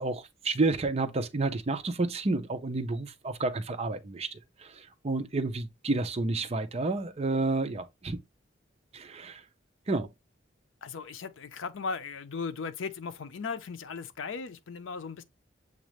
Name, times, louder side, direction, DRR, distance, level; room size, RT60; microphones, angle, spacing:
voice 1, 0.0-8.2 8.9-9.4 9.9-10.1, right 3 dB, 35° right, 0.5 m, -30 dB
voice 2, 10.8-15.2, left 5 dB, 85° left, 0.5 m, -37 dB
7.1 x 2.4 x 3.0 m
head